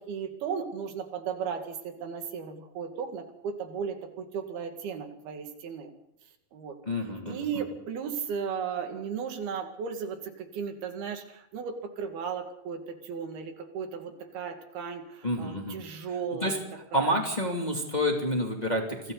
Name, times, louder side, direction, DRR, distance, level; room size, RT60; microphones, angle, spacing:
voice 1, 0.0-5.9 6.5-6.8 7.3-16.6 16.9-17.2, right 6 dB, 90° right, 5 dB, 4.1 m, -35 dB
voice 2, 6.9-7.6 15.2-15.8 16.4-16.6 16.9-19.1, equal, 15° left, 1 dB, 2.5 m, -29 dB
28.5 x 23.5 x 4.1 m, 0.80 s
omnidirectional pair, 4.3 m